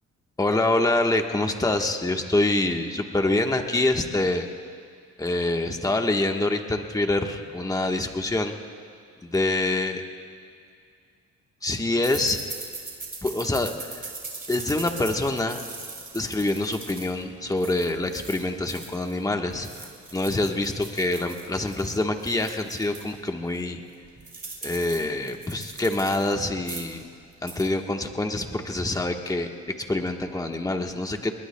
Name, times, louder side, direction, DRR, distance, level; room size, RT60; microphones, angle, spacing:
voice 1, 0.4-4.5 5.2-8.5 9.2-10.0 11.6-12.4 13.2-14.1 14.5-15.6 16.1-23.8 24.6-27.0 27.4-29.5 29.9-31.3, left 2 dB, 10° left, 4 dB, 1.3 m, -26 dB
sound 1, 12.0-19.2 19.5-23.1 23.5-23.6 23.9-26.3 26.6-27.0 27.3-27.7, right 3 dB, 30° right, 3.9 m, -40 dB
29.0 x 21.0 x 2.3 m, 2.2 s
cardioid pair, 90°, 30 cm